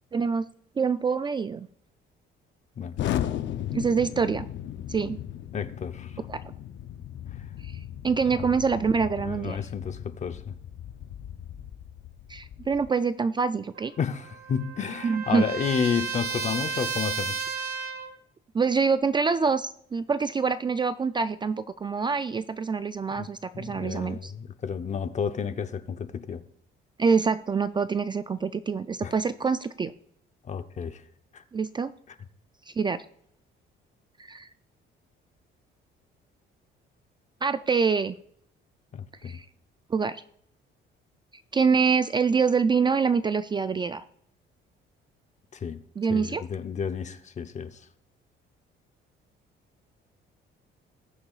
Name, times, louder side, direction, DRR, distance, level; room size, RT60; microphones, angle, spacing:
voice 1, 0.1-0.4 0.8-1.7 3.7-4.5 4.9-5.2 6.3-6.4 7.6-9.6 12.3-13.9 15.0-15.4 18.5-24.3 27.0-29.9 31.5-31.9 32.7-33.1 34.2-34.5 37.4-38.1 39.2-39.5 39.9-40.2 41.5-44.1 46.0-46.4, right 5 dB, 20° right, 0.3 m, -25 dB
Explosion, 3.0-12.9, left 11 dB, 65° left, 0.7 m, -36 dB
voice 2, 5.5-6.1 8.3-8.5 9.2-10.6 14.0-17.5 23.2-23.3 23.5-26.4 29.0-29.1 30.4-31.0 31.3-31.4 38.9-39.4 45.5-45.8 46.1-47.8, left 7 dB, 35° left, 0.7 m, -31 dB
Trumpet, 13.8-18.1, right 5 dB, 50° right, 1.1 m, -33 dB
20.0 x 6.8 x 2.4 m
cardioid pair, 130°, 20 cm